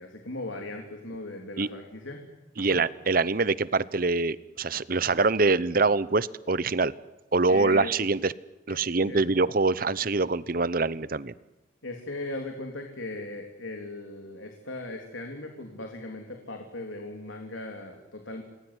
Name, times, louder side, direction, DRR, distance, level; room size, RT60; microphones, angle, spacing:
voice 1, 0.0-2.2 2.6-2.8 7.5-7.9 8.7-9.2 11.8-18.4, left 2 dB, 85° left, 3 dB, 3.5 m, -38 dB
voice 2, 2.6-6.9 7.3-8.3 8.7-11.3, right 3 dB, 45° right, 17 dB, 0.9 m, -24 dB
29.0 x 20.5 x 9.9 m, 1.1 s
head